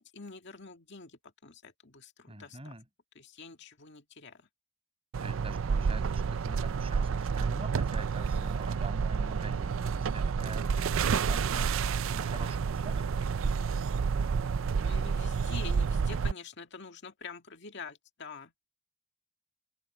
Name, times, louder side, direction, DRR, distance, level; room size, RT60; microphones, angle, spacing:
voice 1, 0.0-2.7 3.2-4.5 14.8-18.5, left 4 dB, 55° left, 2.2 m, -46 dB
voice 2, 2.3-2.8 5.2-13.7, right 2 dB, 25° right, 6.1 m, -46 dB
sound 1, 5.1-16.3, right 5 dB, 65° right, 0.4 m, -29 dB
open air
head